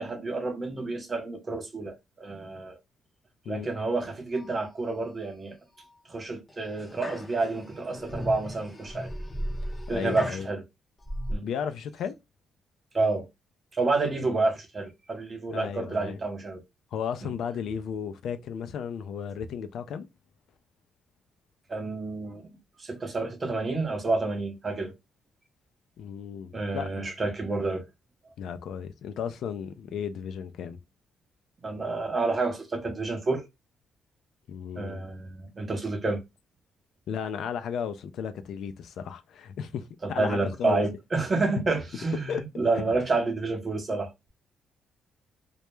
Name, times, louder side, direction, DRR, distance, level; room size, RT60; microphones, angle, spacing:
voice 1, 0.0-2.8 3.5-5.5 6.1-9.1 9.9-10.6 11.3-11.5 12.9-13.3 13.7-16.6 17.2-17.3 21.7-22.5 22.8-24.9 26.5-27.8 31.6-33.4 34.8-36.2 40.0-44.1, right 3 dB, 30° right, 0.7 m, -29 dB
sound 1, 4.3-5.0 5.5-5.9 6.5-10.5 11.0-11.3, equal, 20° left, 0.5 m, -37 dB
voice 2, 9.9-10.5 11.4-12.2 14.2-14.4 15.5-16.2 16.9-20.1 26.0-27.1 28.4-30.8 34.5-35.0 37.1-40.8 41.6-41.7 42.1-42.4 42.8-42.9, left 7 dB, 70° left, 0.3 m, -34 dB
2.2 x 2.0 x 2.9 m
cardioid pair, 90°, 0 cm